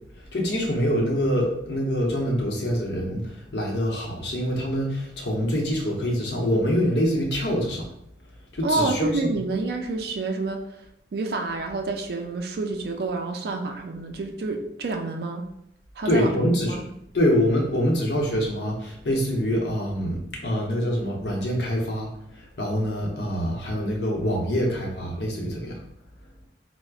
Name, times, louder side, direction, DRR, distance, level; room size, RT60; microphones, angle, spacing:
voice 1, 0.2-7.9 8.5-9.4 16.0-16.8 17.1-25.8, equal, 75° left, -1 dB, 0.8 m, -25 dB
voice 2, 8.6-10.6 11.1-15.4 16.0-16.8, right 3 dB, 55° right, 4 dB, 0.3 m, -28 dB
4.5 x 2.0 x 2.3 m, 0.78 s
head